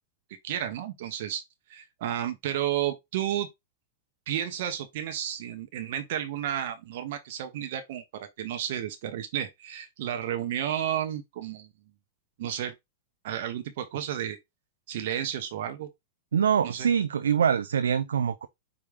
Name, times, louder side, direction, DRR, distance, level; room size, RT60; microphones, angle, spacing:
voice 1, 0.4-1.4 1.7-3.5 4.3-11.7 12.4-12.7 13.2-14.4 14.9-15.9 16.6-16.9, right 10 dB, 65° right, 0.8 m, -32 dB
voice 2, 16.3-18.5, right 7 dB, 85° right, 0.4 m, -24 dB
4.9 x 2.7 x 3.6 m
hypercardioid pair, 115°, 0 cm